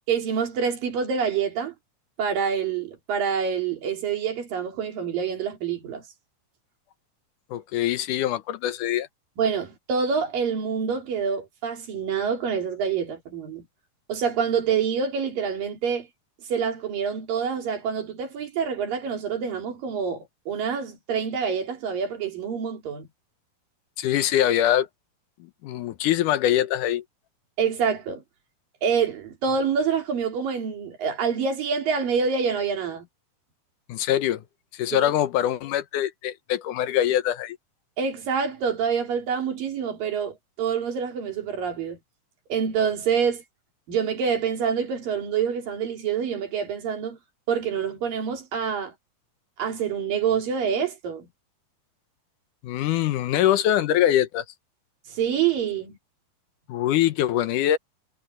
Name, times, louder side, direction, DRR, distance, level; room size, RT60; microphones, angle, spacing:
voice 1, 0.1-1.7 2.2-6.0 9.4-13.7 14.1-16.1 16.5-23.1 27.6-28.2 28.8-33.1 34.9-35.1 38.0-42.0 42.5-43.4 43.9-47.2 47.5-48.9 49.6-51.3 55.1-56.0, right 6 dB, 80° right, 4.8 m, -26 dB
voice 2, 7.5-9.1 24.0-24.9 25.4-27.0 33.9-34.4 34.7-37.6 52.6-54.4 56.7-57.8, left 11 dB, 75° left, 2.4 m, -23 dB
omnidirectional pair, 3.9 m